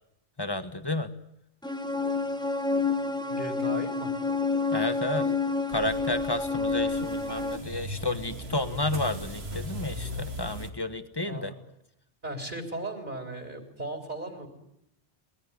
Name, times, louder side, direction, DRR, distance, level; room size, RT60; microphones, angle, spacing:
voice 1, 0.4-1.1 4.7-5.3 5.7-11.5, left 2 dB, 20° left, 11 dB, 1.2 m, -31 dB
sound 1, 1.6-7.6, left 3 dB, 5° left, 1.4 m, -28 dB
voice 2, 3.3-4.1 11.2-11.5 12.2-14.5, right 2 dB, 45° right, 4 dB, 3.4 m, -37 dB
sound 2, 5.7-10.7, equal, 65° right, 2.3 m, -38 dB
23.0 x 19.0 x 9.7 m, 0.79 s
omnidirectional pair, 1.2 m